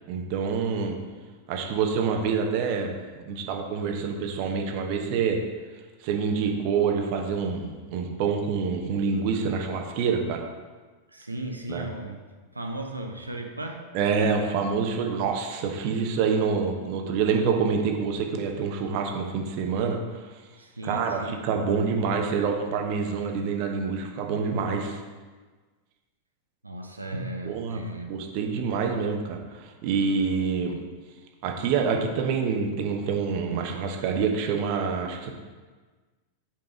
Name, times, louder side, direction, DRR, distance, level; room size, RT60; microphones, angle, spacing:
voice 1, 0.1-1.0 1.5-2.9 3.3-5.4 6.0-10.4 11.7-11.8 13.9-20.0 20.8-25.0 27.4-27.8 28.1-30.8 31.4-35.3, right 5 dB, 45° right, 3 dB, 0.9 m, -26 dB
voice 2, 11.1-12.2 12.5-13.8 14.2-14.3 20.6-21.3 26.6-28.2, right 1 dB, 85° right, 3 dB, 0.6 m, -36 dB
5.6 x 5.2 x 5.0 m, 1.4 s
figure-of-eight pair, 90°, 0 cm